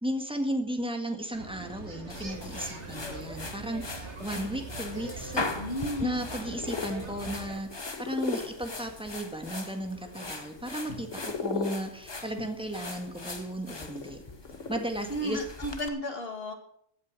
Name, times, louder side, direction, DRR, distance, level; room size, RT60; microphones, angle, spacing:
voice 1, 0.0-5.5 6.0-14.2 14.7-15.4, right 1 dB, 5° right, 4 dB, 1.8 m, -35 dB
sound 1, 1.3-7.6, right 3 dB, 65° right, 2.3 m, -42 dB
sound 2, 2.1-15.9, left 3 dB, 25° left, 1.0 m, -41 dB
voice 2, 5.5-6.2 15.1-16.5, equal, 50° left, 5 dB, 2.4 m, -33 dB
sound 3, 6.4-15.2, left 5 dB, 80° left, 2.0 m, -40 dB
16.0 x 8.8 x 6.3 m, 0.68 s
omnidirectional pair, 1.3 m